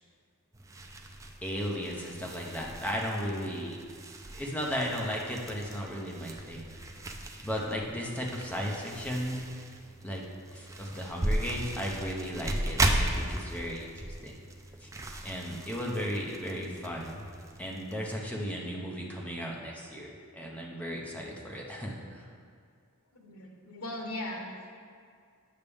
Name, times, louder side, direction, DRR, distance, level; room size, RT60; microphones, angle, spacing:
sound 1, 0.5-18.2, right 1 dB, 15° right, 0.4 m, -36 dB
voice 1, 1.4-3.8 4.3-6.7 7.4-9.4 10.0-10.2 10.5-14.4 14.8-14.9 15.2-17.2 17.6-22.2, equal, 5° left, -2 dB, 0.8 m, -35 dB
voice 2, 23.1-24.7, left 1 dB, 85° left, 1 dB, 1.0 m, -39 dB
8.4 x 5.8 x 3.5 m, 2.2 s
head